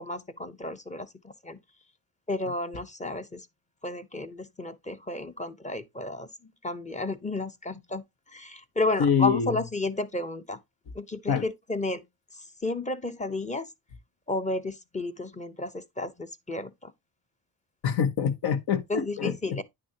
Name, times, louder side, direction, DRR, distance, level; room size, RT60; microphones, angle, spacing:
voice 1, 0.0-1.6 2.3-3.5 3.8-6.3 6.6-8.0 8.3-10.6 10.9-12.0 12.3-13.7 14.3-16.9 18.9-19.6, left 2 dB, 20° left, 0.8 m, -32 dB
voice 2, 9.0-9.5 11.3-11.4 17.8-19.6, left 7 dB, 90° left, 1.2 m, -25 dB
9.7 x 6.1 x 2.9 m
cardioid pair, 115°, 37 cm